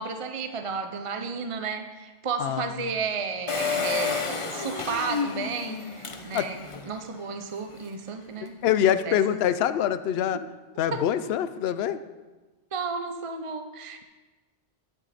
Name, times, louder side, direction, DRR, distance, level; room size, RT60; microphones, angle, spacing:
voice 1, 0.0-8.6 9.0-9.4 10.9-11.3 12.7-14.0, right 5 dB, 35° right, 7 dB, 0.6 m, -33 dB
voice 2, 2.4-2.7 6.3-6.5 8.6-10.4 10.8-12.0, left 10 dB, 65° left, 12 dB, 0.8 m, -24 dB
Engine, 3.5-6.9 7.4-7.5 7.7-7.8, left 5 dB, 30° left, 0.7 m, -30 dB
11.0 x 10.0 x 4.2 m, 1.2 s
omnidirectional pair, 1.2 m